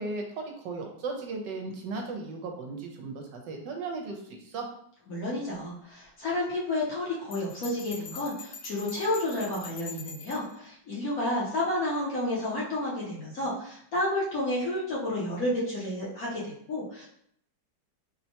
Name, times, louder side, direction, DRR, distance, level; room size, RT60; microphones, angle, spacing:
voice 1, 0.0-4.7, right 3 dB, 75° right, 2 dB, 1.2 m, -36 dB
voice 2, 5.1-17.1, left 1 dB, 60° left, -6 dB, 1.1 m, -31 dB
Bell, 7.3-10.5, left 5 dB, 85° left, 1.5 m, -44 dB
4.3 x 2.1 x 2.8 m, 0.68 s
omnidirectional pair, 2.0 m